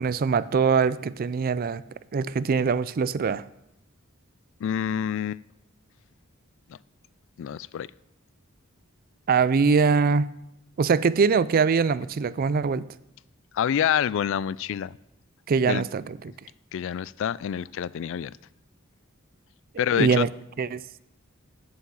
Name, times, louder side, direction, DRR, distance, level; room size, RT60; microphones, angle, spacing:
voice 1, 0.0-1.8 2.1-3.4 9.3-10.3 10.8-12.9 15.5-16.3 20.0-20.3 20.6-21.0, right 5 dB, 45° right, 17 dB, 0.4 m, -23 dB
voice 2, 4.6-5.4 7.4-7.9 13.5-15.0 15.7-15.8 16.7-18.3 19.8-20.2, left 9 dB, 65° left, 20 dB, 0.3 m, -27 dB
8.8 x 7.7 x 7.0 m, 0.82 s
head